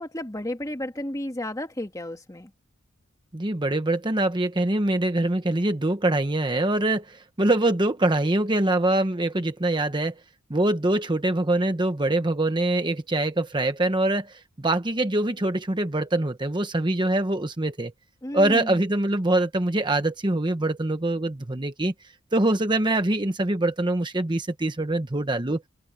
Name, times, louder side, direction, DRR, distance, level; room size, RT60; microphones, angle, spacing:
voice 1, 0.0-2.5 18.2-18.8, left 1 dB, 15° left, 1.9 m, -32 dB
voice 2, 3.3-10.2 10.5-17.9 18.3-21.9 22.3-25.6, right 2 dB, 20° right, 1.0 m, -24 dB
head